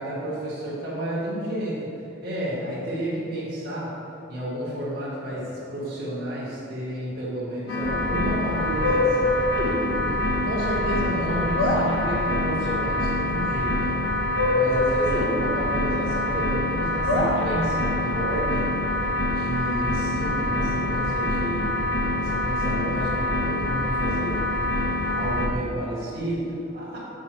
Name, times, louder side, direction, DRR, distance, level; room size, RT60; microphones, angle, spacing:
voice 1, 0.0-1.9 2.2-3.9 4.3-9.5 10.0-14.0 14.5-18.8 19.3-21.7 22.1-24.4 25.1-27.1, right 1 dB, 50° right, -8 dB, 1.5 m, -31 dB
sound 1, 7.7-25.5, left 1 dB, 65° left, 1.1 m, -24 dB
6.5 x 5.5 x 4.4 m, 2.7 s
head